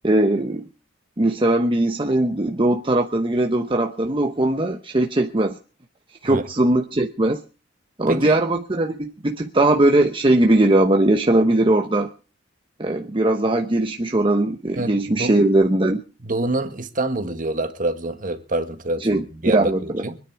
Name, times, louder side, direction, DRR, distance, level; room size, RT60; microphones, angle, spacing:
voice 1, 0.0-0.6 1.2-5.6 6.2-7.4 8.0-12.1 12.8-16.0 19.0-19.2 19.5-20.0, right 1 dB, 25° right, 3 dB, 1.0 m, -19 dB
voice 2, 8.1-8.4 14.8-15.3 16.2-20.2, right 2 dB, 45° right, 7 dB, 1.8 m, -26 dB
25.0 x 10.0 x 4.6 m, 0.35 s
head